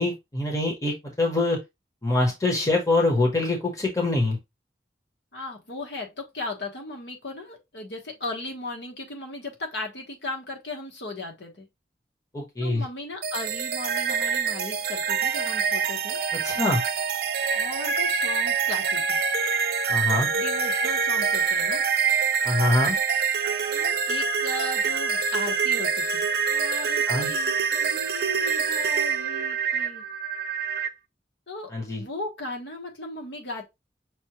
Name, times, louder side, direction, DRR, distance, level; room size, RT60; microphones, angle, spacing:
voice 1, 0.0-1.6 2.0-4.4 12.3-12.8 16.3-16.8 19.9-20.3 22.4-23.0 27.1-27.3 31.7-32.0, left 2 dB, 20° left, 1.2 m, -24 dB
voice 2, 5.3-11.7 12.6-16.2 17.5-19.2 20.3-21.8 23.7-30.0 31.5-33.6, left 2 dB, 75° left, 1.3 m, -37 dB
sound 1, 13.2-30.9, right 6 dB, 55° right, 0.5 m, -25 dB
6.2 x 2.4 x 3.0 m
head